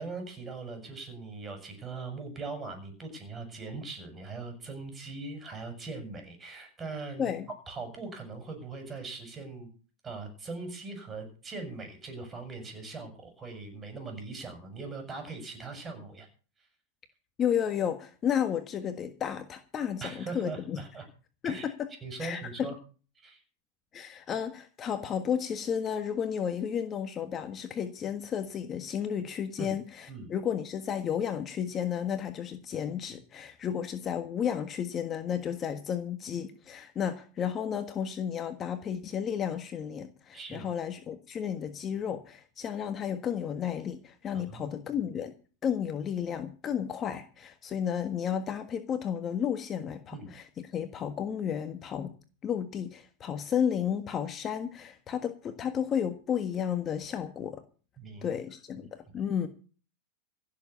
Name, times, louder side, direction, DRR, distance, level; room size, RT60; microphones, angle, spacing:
voice 1, 0.0-7.3 7.7-9.7 10.0-16.3 20.0-21.1 21.4-21.7 22.0-22.8 23.2-23.4 29.6-29.8 30.1-30.3 40.3-40.7 44.3-44.8 50.1-50.3 58.0-58.4 58.8-58.9, right 3 dB, 20° right, 6 dB, 7.0 m, -40 dB
voice 2, 17.4-20.8 21.4-21.9 22.2-22.7 23.9-45.3 45.6-52.1 52.4-57.6 58.2-59.5, left 8 dB, 30° left, 7 dB, 1.5 m, -32 dB
16.0 x 7.5 x 8.3 m, 0.39 s
supercardioid pair, 130°, 0 cm